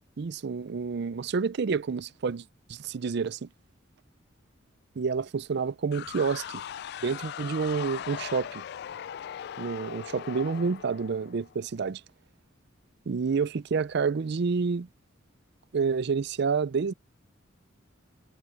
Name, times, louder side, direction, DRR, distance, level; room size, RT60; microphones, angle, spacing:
voice 1, 0.2-2.4 2.7-3.5 5.0-6.6 7.0-8.6 9.6-12.0 13.1-14.9 15.7-16.9, right 5 dB, 55° right, 0.4 m, -29 dB
sound 1, 5.9-11.7, left 9 dB, 55° left, 0.3 m, -39 dB
head